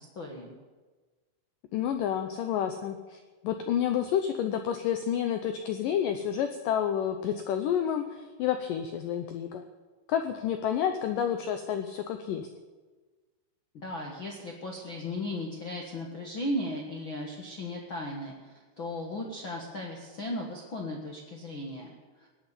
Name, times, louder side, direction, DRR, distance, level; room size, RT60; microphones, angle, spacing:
voice 1, 0.1-0.5 13.7-22.3, left 1 dB, 65° left, 0 dB, 1.2 m, -36 dB
voice 2, 1.7-9.6 10.1-12.5, left 9 dB, 85° left, 7 dB, 1.9 m, -29 dB
18.0 x 7.1 x 10.0 m, 1.3 s
omnidirectional pair, 4.9 m